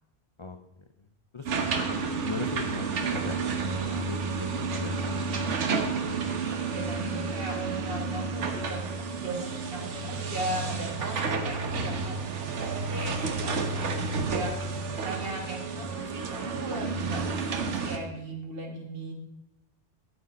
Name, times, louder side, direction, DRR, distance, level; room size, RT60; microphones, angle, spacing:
voice 1, 1.3-5.2, left 3 dB, 35° left, 5 dB, 0.5 m, -39 dB
sound 1, 1.5-18.0, right 4 dB, 70° right, 1.3 m, -31 dB
voice 2, 6.3-8.8 9.1-12.2 12.4-12.5 12.8-14.5 14.9-19.1, right 1 dB, 50° right, 2 dB, 1.8 m, -38 dB
13.0 x 8.0 x 4.2 m, 0.86 s
omnidirectional pair, 1.3 m